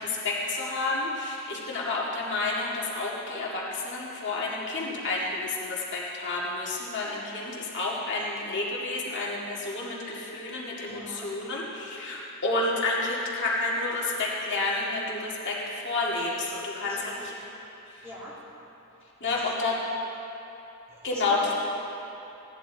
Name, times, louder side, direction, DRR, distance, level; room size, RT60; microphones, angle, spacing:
voice 1, 0.0-17.3 17.9-18.0 19.2-19.8 21.0-21.5, left 2 dB, 55° left, -5 dB, 2.0 m, -30 dB
voice 2, 10.9-11.3 16.8-17.2 18.0-18.4 19.3-19.4 20.9-21.5, equal, 15° right, -8 dB, 2.7 m, -43 dB
17.0 x 11.0 x 4.0 m, 2.9 s
head